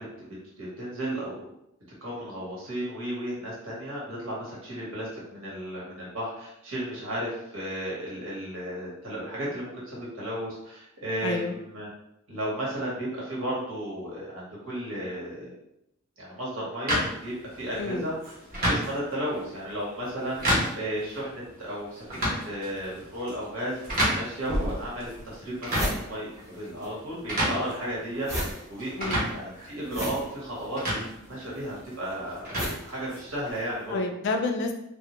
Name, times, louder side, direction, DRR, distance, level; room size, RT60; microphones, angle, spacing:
voice 1, 0.0-1.4 2.0-11.9 12.3-15.5 16.2-18.1 18.6-23.7 24.1-34.0, right 1 dB, 70° right, -6 dB, 1.0 m, -34 dB
voice 2, 11.2-11.6 17.8-18.1 29.0-29.3 33.9-34.7, left 3 dB, 55° left, 4 dB, 0.3 m, -29 dB
sound 1, 16.9-33.5, equal, 45° right, 0.8 m, -32 dB
sound 2, 24.4-24.5 25.1-25.2 25.4-26.9 27.2-33.7, equal, 15° right, 0.5 m, -36 dB
sound 3, 24.5-25.3 28.2-28.5, equal, 85° right, 0.6 m, -33 dB
2.1 x 2.1 x 2.9 m, 0.79 s
head